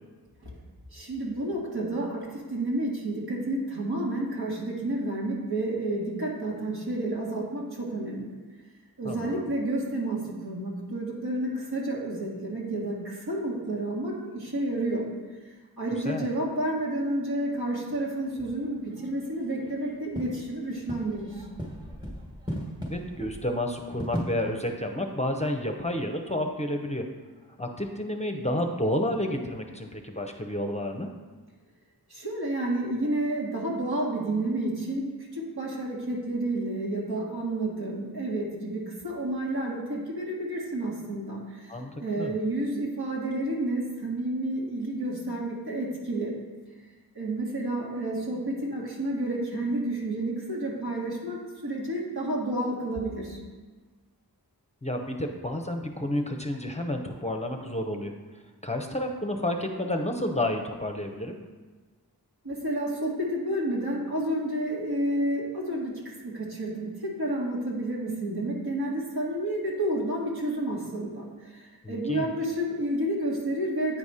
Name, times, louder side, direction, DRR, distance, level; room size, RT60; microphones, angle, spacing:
voice 1, 0.9-8.3 9.0-15.1 15.8-21.4 32.1-41.7 42.0-46.3 47.2-53.4 62.4-74.0, right 1 dB, 75° right, -3 dB, 1.8 m, -30 dB
voice 2, 9.0-9.4 16.0-16.3 22.9-27.1 27.6-31.1 41.7-41.9 42.2-42.3 54.8-58.1 58.6-61.4 71.8-72.3, left 1 dB, 15° left, 3 dB, 0.6 m, -30 dB
sound 1, 17.7-25.6, equal, 10° right, 1.4 m, -39 dB
8.9 x 4.1 x 4.9 m, 1.4 s
wide cardioid pair, 65°, 39 cm